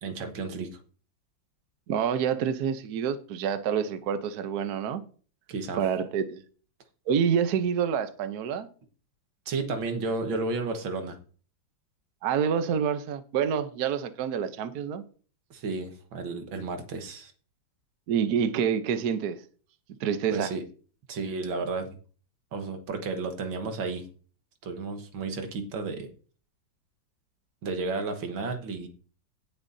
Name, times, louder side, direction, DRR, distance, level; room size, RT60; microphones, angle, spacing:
voice 1, 0.0-0.8 5.5-5.8 9.5-11.2 15.5-17.3 20.3-20.6 21.1-21.9 22.5-24.0 24.6-26.1 27.6-28.9, right 3 dB, 90° right, 2.1 m, -32 dB
voice 2, 1.9-5.0 5.8-6.4 7.1-8.7 12.2-15.0 18.1-19.4 20.0-20.5, right 7 dB, 60° right, 1.2 m, -27 dB
17.5 x 6.9 x 2.7 m
omnidirectional pair, 2.1 m